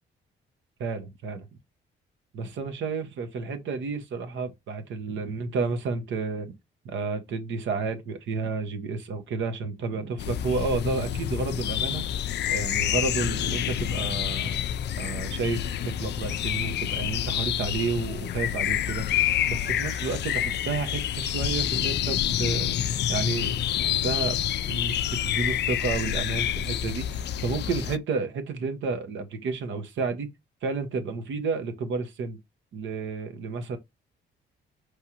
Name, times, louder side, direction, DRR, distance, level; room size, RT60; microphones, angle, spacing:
voice 1, 0.8-1.5 2.3-6.5 6.8-12.0 12.5-14.6 15.0-19.1 19.5-22.8 23.1-24.4 24.7-30.3 30.6-32.4 32.7-33.8, right 4 dB, 70° right, 1.1 m, -31 dB
sound 1, 10.2-28.0, left 11 dB, 60° left, 0.4 m, -28 dB
4.8 x 3.3 x 2.9 m
cardioid pair, 90°, 20 cm